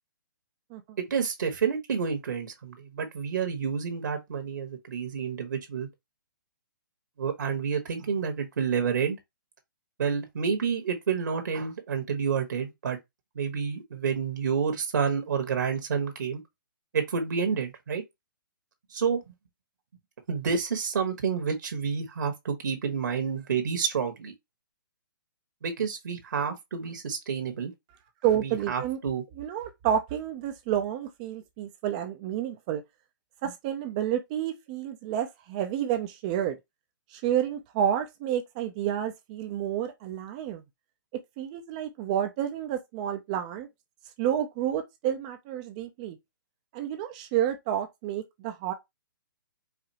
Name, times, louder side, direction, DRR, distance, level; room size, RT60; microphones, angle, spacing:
voice 1, 1.1-5.9 7.2-9.2 10.0-13.0 13.3-16.4 16.9-18.0 18.9-19.2 20.3-24.3 25.6-27.7 28.4-29.2, right 6 dB, 65° right, 1.4 m, -29 dB
voice 2, 28.2-29.0 29.4-32.8 33.4-36.6 37.1-40.6 41.4-43.7 44.2-46.2 46.7-48.7, right 10 dB, 20° right, 0.4 m, -30 dB
4.9 x 2.5 x 2.8 m
hypercardioid pair, 165°, 11 cm